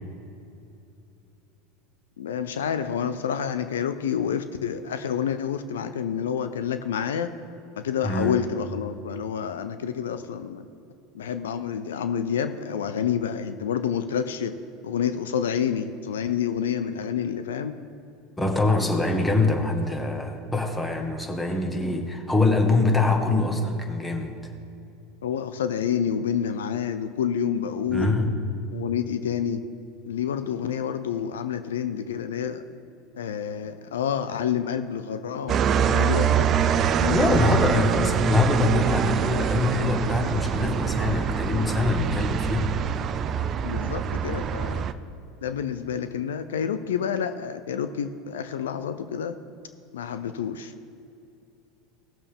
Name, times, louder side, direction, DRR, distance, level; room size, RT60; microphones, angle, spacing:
voice 1, 2.2-7.3 7.8-10.6 11.1-14.5 14.8-17.7 25.2-28.2 28.7-29.6 30.1-32.6 33.1-37.6 43.6-44.9 45.4-49.4 49.9-50.7, left 8 dB, 85° left, 11 dB, 0.5 m, -28 dB
voice 2, 8.0-8.4 18.4-24.3 27.9-28.4 37.1-42.7, left 3 dB, 10° left, 3 dB, 1.7 m, -24 dB
sound 1, 35.5-44.9, right 7 dB, 40° right, 0.5 m, -24 dB
18.0 x 6.9 x 3.6 m, 2.7 s
hypercardioid pair, 90°, 0 cm